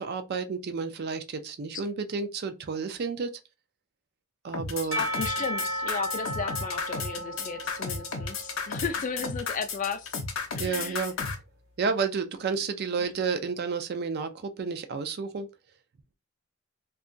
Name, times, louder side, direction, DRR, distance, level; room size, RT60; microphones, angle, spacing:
voice 1, 0.0-3.4 4.4-5.0 10.6-11.1 11.8-15.5, right 5 dB, 50° right, 0.4 m, -31 dB
sound 1, 4.5-11.4, left 5 dB, 75° left, 0.6 m, -33 dB
Percussion / Church bell, 4.9-10.0, right 1 dB, 65° right, 0.9 m, -35 dB
voice 2, 5.0-10.2 10.5-11.0 13.0-13.1, left 5 dB, 40° left, 0.4 m, -34 dB
2.8 x 2.3 x 2.5 m
head